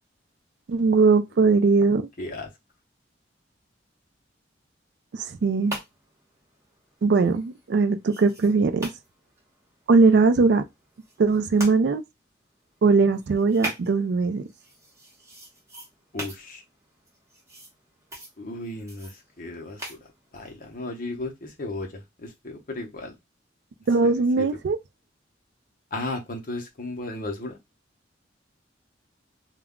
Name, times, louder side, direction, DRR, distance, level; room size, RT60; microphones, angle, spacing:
voice 1, 0.7-2.1 5.1-5.7 7.0-8.9 9.9-10.6 11.2-12.0 12.8-14.4 23.9-24.8, right 4 dB, 65° right, 0.3 m, -20 dB
voice 2, 2.2-2.5 16.1-16.6 18.4-23.1 24.0-24.5 25.9-27.6, left 2 dB, 50° left, 0.7 m, -35 dB
sound 1, 5.3-11.7 12.2-20.7, right 1 dB, 15° right, 0.8 m, -43 dB
2.2 x 2.1 x 3.6 m
head